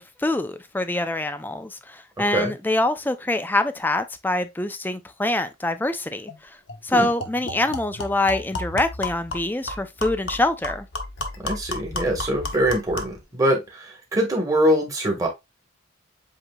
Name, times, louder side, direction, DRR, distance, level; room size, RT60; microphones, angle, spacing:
voice 1, 0.0-6.3 6.8-10.9, left 2 dB, 10° left, 0.4 m, -25 dB
sound 1, 6.3-6.4 6.7-6.8 7.2-13.2, left 2 dB, 70° left, 0.9 m, -33 dB
voice 2, 11.4-15.3, right 1 dB, 15° right, 1.3 m, -23 dB
7.8 x 2.8 x 2.2 m
head